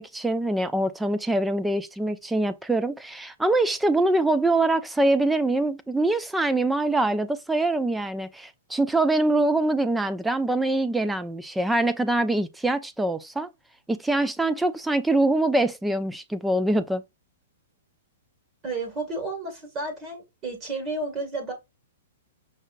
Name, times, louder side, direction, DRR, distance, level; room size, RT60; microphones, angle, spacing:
voice 1, 0.0-13.5 13.9-17.0, right 2 dB, 5° right, 0.4 m, -24 dB
voice 2, 18.6-21.5, right 3 dB, 30° right, 2.0 m, -32 dB
5.4 x 3.7 x 2.5 m
hypercardioid pair, 135°, 0 cm